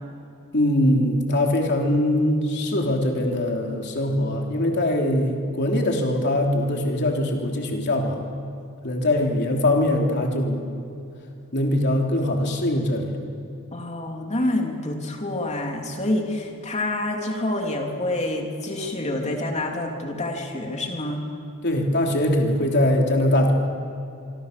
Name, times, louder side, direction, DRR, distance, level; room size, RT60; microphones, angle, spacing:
voice 1, 0.5-8.2 8.8-10.6 11.5-13.1 21.6-23.5, left 1 dB, 50° left, 1 dB, 3.3 m, -22 dB
voice 2, 13.7-21.2, left 1 dB, 30° left, 1 dB, 3.1 m, -27 dB
25.5 x 25.0 x 6.8 m, 2.6 s
head